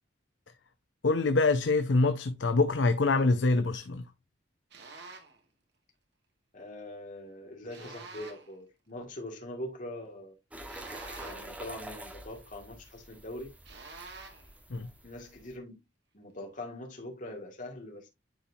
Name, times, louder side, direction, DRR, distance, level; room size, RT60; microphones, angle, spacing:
voice 1, 1.0-4.0 14.7-14.9, left 3 dB, 80° left, 0.7 m, -25 dB
sound 1, 4.7-5.4 7.7-8.6 10.7-11.7 13.7-14.5, right 4 dB, 70° right, 2.2 m, -47 dB
voice 2, 6.5-10.3 11.2-13.5 15.0-15.8 16.1-18.1, left 1 dB, 45° left, 2.3 m, -42 dB
sound 2, 10.5-15.5, right 1 dB, 10° right, 1.5 m, -47 dB
10.5 x 4.4 x 2.7 m
head